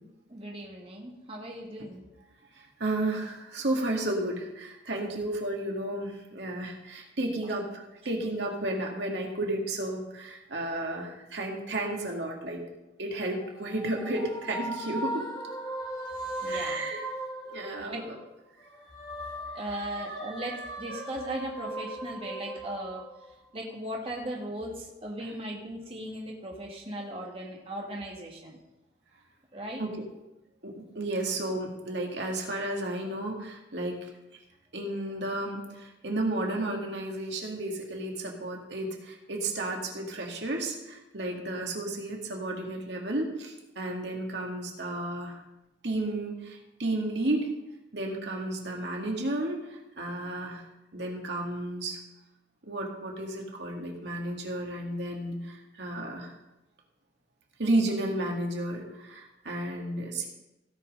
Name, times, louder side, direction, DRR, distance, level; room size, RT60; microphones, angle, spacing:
voice 1, 0.3-2.1 7.4-7.5 16.0-16.8 17.8-18.0 19.5-28.6 29.5-29.8 34.9-35.1, right 1 dB, 30° right, -1 dB, 1.6 m, -38 dB
voice 2, 2.5-12.6 13.0-15.2 16.5-17.0 17.5-18.2 29.8-29.9 30.6-34.1 34.7-45.4 45.8-47.5 47.9-50.6 50.9-52.0 52.6-56.3 57.6-60.3, right 1 dB, 75° right, 0 dB, 2.1 m, -32 dB
sound 1, 13.2-18.2 18.6-23.3, right 1 dB, 25° left, 1.5 m, -38 dB
17.0 x 5.6 x 5.4 m, 0.96 s
head